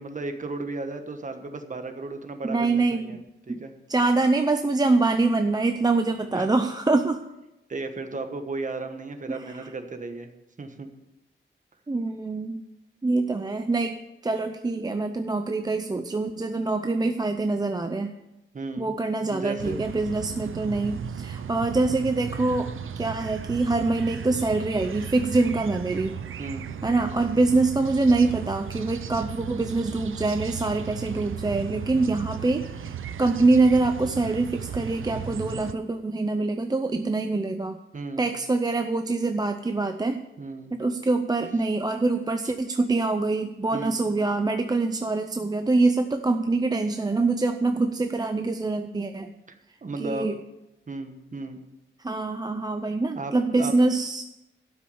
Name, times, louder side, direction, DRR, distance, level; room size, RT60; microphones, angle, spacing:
voice 1, 0.0-3.2 3.5-3.7 6.3-6.5 7.7-10.3 10.6-10.9 18.5-18.9 19.3-19.8 26.4-26.7 37.9-38.3 40.4-40.7 43.7-44.0 49.8-50.3 50.9-51.6 53.2-53.7, right 3 dB, 40° right, 7 dB, 1.2 m, -34 dB
voice 2, 2.4-3.2 3.5-3.6 3.9-7.2 9.3-9.7 11.9-12.6 13.0-18.1 18.8-22.7 23.0-26.2 26.8-37.8 38.2-40.2 40.7-49.3 50.0-50.4 52.0-54.2, right 3 dB, 20° right, 7 dB, 0.5 m, -25 dB
sound 1, 19.6-35.7, right 8 dB, 75° right, 0.6 m, -36 dB
12.0 x 6.2 x 8.7 m, 0.95 s
wide cardioid pair, 155°, 21 cm